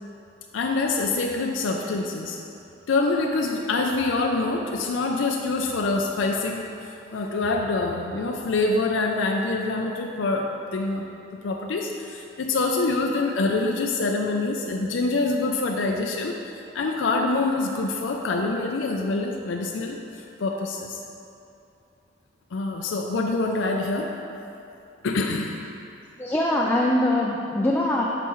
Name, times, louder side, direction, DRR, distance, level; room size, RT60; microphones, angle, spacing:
voice 1, 0.5-2.4 2.9-11.1 11.4-16.4 16.7-20.0 20.4-21.0 22.5-24.1 25.0-25.5 26.5-26.7, left 3 dB, 90° left, 1 dB, 0.5 m, -25 dB
voice 2, 26.2-28.0, left 1 dB, 10° left, -2 dB, 0.4 m, -22 dB
8.8 x 5.9 x 3.1 m, 2.7 s
head